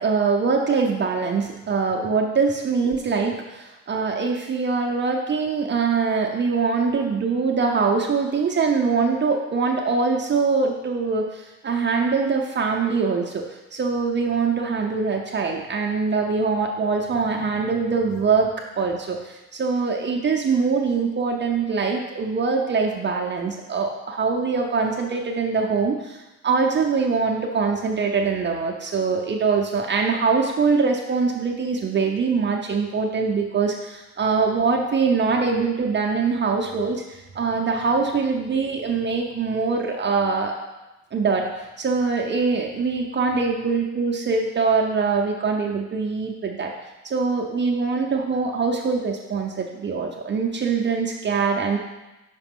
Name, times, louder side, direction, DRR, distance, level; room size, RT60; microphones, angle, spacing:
voice 1, 0.0-13.5 13.7-18.5 18.8-40.5 41.1-46.7 47.0-51.8, right 4 dB, 35° right, 0 dB, 0.6 m, -23 dB
5.8 x 4.9 x 3.6 m, 1.1 s
cardioid pair, 90°, 30 cm